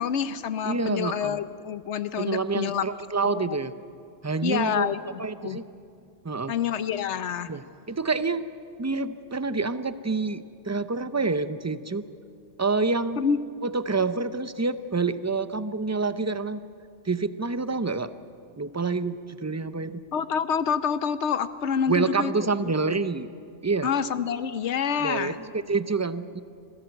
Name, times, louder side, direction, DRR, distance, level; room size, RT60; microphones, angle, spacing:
voice 1, 0.0-2.9 3.2-3.6 4.4-5.6 6.5-7.5 13.2-13.4 20.1-22.3 23.8-25.4, left 7 dB, 85° left, 13 dB, 1.1 m, -27 dB
voice 2, 0.7-1.4 2.2-3.7 4.2-4.9 5.2-5.6 6.2-6.5 7.5-8.4 8.8-12.0 12.6-13.2 13.6-16.6 17.0-18.1 18.6-20.0 21.9-23.3 23.6-23.9 25.0-26.4, right 4 dB, 25° right, 12 dB, 0.3 m, -27 dB
25.5 x 16.0 x 7.9 m, 2.4 s
omnidirectional pair, 1.1 m